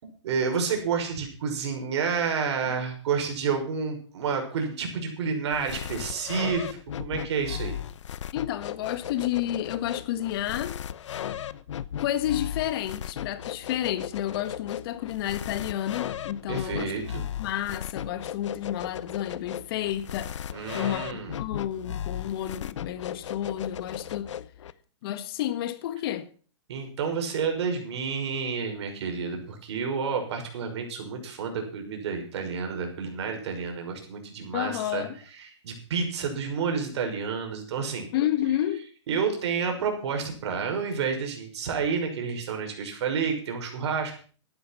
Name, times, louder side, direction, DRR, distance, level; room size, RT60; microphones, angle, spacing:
voice 1, 0.0-7.7 16.5-17.2 20.5-21.4 26.7-35.0 35.6-38.1 39.1-44.1, right 5 dB, 65° right, 6.0 m, -30 dB
sound 1, 5.5-24.7, left 10 dB, 75° left, 0.9 m, -36 dB
voice 2, 8.3-10.8 12.0-16.9 17.4-20.5 20.7-24.3 25.0-26.3 34.5-35.2 38.1-38.8, left 12 dB, 50° left, 1.6 m, -30 dB
14.5 x 11.0 x 6.0 m
hypercardioid pair, 140°, 15 cm